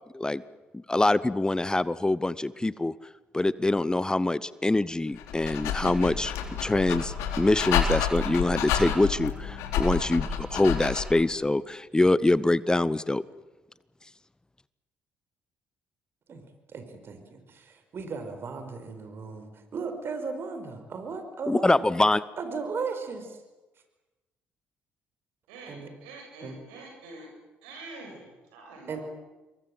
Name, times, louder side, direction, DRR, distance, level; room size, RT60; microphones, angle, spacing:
voice 1, 0.7-2.9 3.3-6.3 6.6-13.2 21.5-22.2, left 2 dB, 15° left, 18 dB, 0.9 m, -24 dB
Dog, 5.1-11.2, left 7 dB, 80° left, 3.5 m, -29 dB
voice 2, 16.3-21.9 22.4-23.4 25.7-25.9 26.4-26.6 28.9-29.0, right 4 dB, 55° right, 8 dB, 4.8 m, -36 dB
voice 3, 25.5-27.3 27.6-29.0, right 2 dB, 85° right, 2 dB, 7.7 m, -46 dB
27.0 x 22.5 x 7.9 m, 1.1 s
hypercardioid pair, 55°, 5 cm